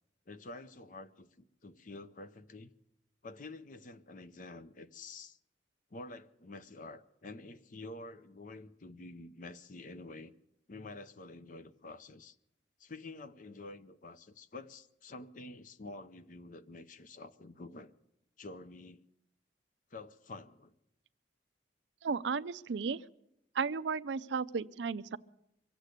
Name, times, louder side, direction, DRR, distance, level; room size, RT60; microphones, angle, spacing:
voice 1, 0.3-2.7 3.2-5.4 5.9-10.3 10.7-12.4 12.8-17.9 18.4-19.0 19.9-20.7, left 2 dB, 45° left, 0.6 m, -48 dB
voice 2, 22.0-23.0 23.5-25.2, right 5 dB, 75° right, 0.5 m, -34 dB
24.0 x 8.2 x 6.6 m
head